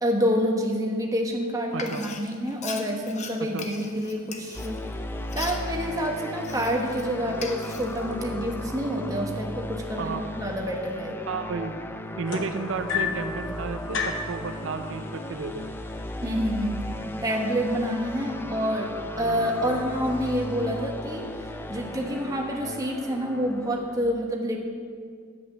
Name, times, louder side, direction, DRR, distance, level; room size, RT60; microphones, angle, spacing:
voice 1, 0.0-4.9 5.3-11.2 16.2-16.7 17.2-18.9 19.2-21.3 21.7-24.6, equal, 15° right, 1 dB, 1.2 m, -28 dB
Frying (food), 1.7-7.0 7.3-8.2, left 5 dB, 35° left, 0.8 m, -40 dB
sound 1, 4.5-24.0, left 1 dB, 10° left, 0.4 m, -36 dB
voice 2, 11.3-11.7 12.2-15.7 19.6-19.8, right 4 dB, 70° right, 7 dB, 0.5 m, -33 dB
sound 2, 12.3-13.3 13.9-14.3 15.4-15.5 15.9-16.2 17.0-17.1, left 6 dB, 65° left, 1.0 m, -29 dB
8.6 x 8.0 x 6.8 m, 2.1 s
head